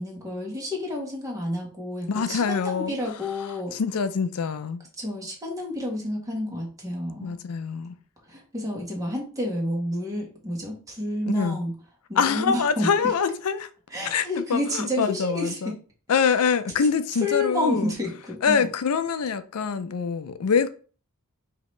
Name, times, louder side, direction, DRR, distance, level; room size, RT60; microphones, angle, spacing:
voice 1, 0.0-3.8 5.0-7.4 8.3-11.7 12.1-12.9 13.9-15.7 17.2-18.7, left 1 dB, 15° right, 1.4 m, -30 dB
voice 2, 2.1-2.9 3.7-4.8 7.2-7.9 11.3-11.6 12.2-13.7 14.0-15.8 16.1-17.9 18.4-20.7, left 6 dB, 85° left, 0.5 m, -25 dB
5.0 x 2.8 x 3.2 m
head